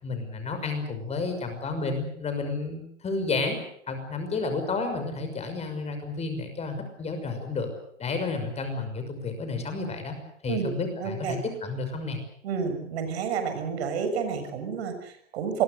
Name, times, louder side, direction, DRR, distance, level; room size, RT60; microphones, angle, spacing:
voice 1, 0.0-3.6 3.9-7.7 8.0-10.2 10.4-12.2, left 3 dB, 15° left, 7 dB, 6.1 m, -31 dB
voice 2, 11.0-11.3 12.4-15.6, right 6 dB, 60° right, 8 dB, 6.8 m, -30 dB
27.0 x 23.0 x 6.7 m, 0.65 s
hypercardioid pair, 115°, 37 cm